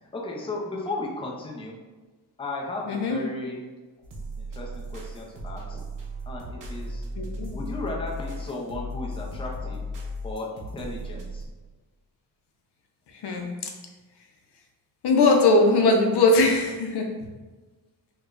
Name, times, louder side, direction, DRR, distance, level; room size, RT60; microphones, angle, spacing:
voice 1, 0.1-1.8 2.4-3.6 4.4-5.8 6.3-7.0 7.5-9.8 10.2-11.4, left 2 dB, 15° left, -2 dB, 0.4 m, -35 dB
voice 2, 2.9-3.2 7.1-7.5 13.1-13.7 15.0-17.1, left 2 dB, 80° left, 2 dB, 0.6 m, -20 dB
sound 1, 4.0-11.4, equal, 55° right, 0.6 m, -36 dB
4.7 x 2.3 x 2.4 m, 1.3 s
wide cardioid pair, 155°, 39 cm